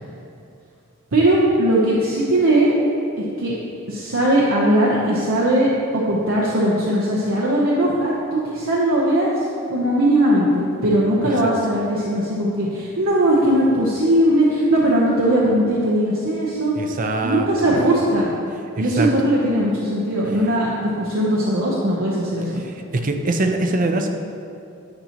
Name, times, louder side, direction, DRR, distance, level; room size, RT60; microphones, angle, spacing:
voice 1, 1.1-2.9 3.4-3.5 3.9-9.4 9.7-16.7 17.2-18.3 18.8-22.6, right 1 dB, 70° right, -5 dB, 0.8 m, -19 dB
voice 2, 16.8-17.5 18.8-19.1 22.6-22.7 23.0-24.1, right 2 dB, 40° right, 4 dB, 0.5 m, -22 dB
9.7 x 5.7 x 2.9 m, 2.6 s
head